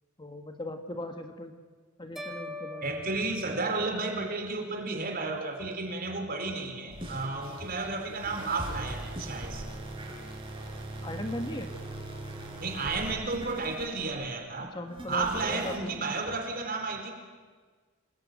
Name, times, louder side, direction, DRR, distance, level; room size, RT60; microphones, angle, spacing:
voice 1, 0.2-1.5 2.0-3.1 3.3-3.4 10.7-11.7 14.6-16.4, left 1 dB, 20° left, 5 dB, 1.6 m, -39 dB
sound 1, 2.2-4.4, left 2 dB, ahead, 4.3 m, -43 dB
voice 2, 2.8-9.6 12.6-14.7 15.1-17.1, right 3 dB, 45° right, 4 dB, 4.4 m, -32 dB
sound 2, 6.9-14.4 14.9-15.8, right 1 dB, 25° right, 5.6 m, -40 dB
27.5 x 21.0 x 9.4 m, 1.5 s
head